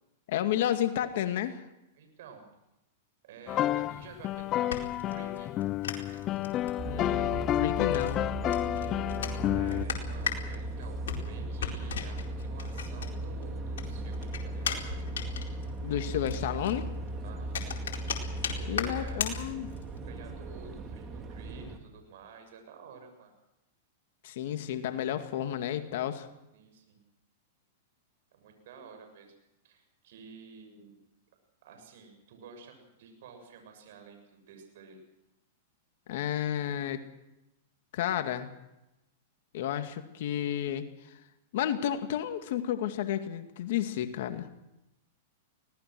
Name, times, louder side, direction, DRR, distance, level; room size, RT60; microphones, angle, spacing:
voice 1, 0.3-1.6 6.8-8.2 15.8-16.9 18.7-19.7 24.2-26.3 36.1-37.0 37.9-38.5 39.5-40.9 41.5-44.5, left 11 dB, 65° left, 8 dB, 2.2 m, -31 dB
voice 2, 1.9-2.5 3.2-5.5 9.5-14.9 17.2-17.6 18.6-19.4 20.0-23.3 26.5-27.0 28.3-29.3 29.6-31.0 31.6-35.0, right 4 dB, 65° right, 5 dB, 6.9 m, -51 dB
sound 1, 3.5-9.9, left 13 dB, 35° left, 0.7 m, -30 dB
sound 2, 4.3-13.4 13.7-20.0, left 7 dB, 80° left, 4.4 m, -38 dB
sound 3, 6.8-21.8, right 1 dB, 25° right, 3.1 m, -37 dB
24.5 x 18.5 x 6.3 m, 0.91 s
hypercardioid pair, 125°, 0 cm